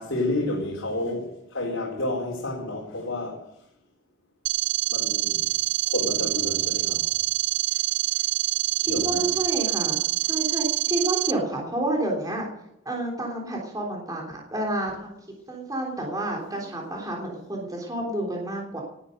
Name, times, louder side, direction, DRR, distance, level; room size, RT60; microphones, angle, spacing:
voice 1, 0.0-3.5 4.9-5.5 5.8-7.1 7.7-7.8 8.2-8.3 8.8-9.3, left 2 dB, 70° left, -3 dB, 4.2 m, -30 dB
sound 1, 4.5-11.3, right 15 dB, 60° right, 0.7 m, -25 dB
voice 2, 8.8-12.5 12.8-15.1 15.5-18.8, right 1 dB, 20° right, -1 dB, 3.4 m, -29 dB
18.5 x 9.7 x 6.5 m, 0.78 s
head